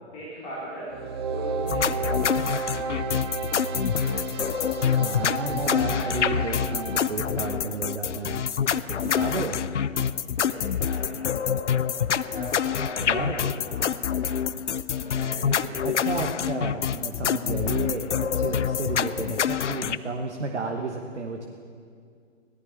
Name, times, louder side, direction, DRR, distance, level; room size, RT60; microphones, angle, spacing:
voice 1, 0.1-1.0 1.3-2.4 4.1-4.5 8.9-9.3 10.4-11.5 12.2-14.3 14.9-15.9, equal, 25° left, -9 dB, 3.6 m, -40 dB
sound 1, 0.9-7.1, right 5 dB, 20° right, 0.6 m, -32 dB
sound 2, 1.7-20.0, left 8 dB, 70° left, 0.5 m, -26 dB
voice 2, 5.0-8.4 8.7-9.6 13.0-13.5 15.3-15.6 15.8-21.5, right 4 dB, 65° right, 3 dB, 1.2 m, -32 dB
17.5 x 13.0 x 4.5 m, 2.2 s
figure-of-eight pair, 125°, 37 cm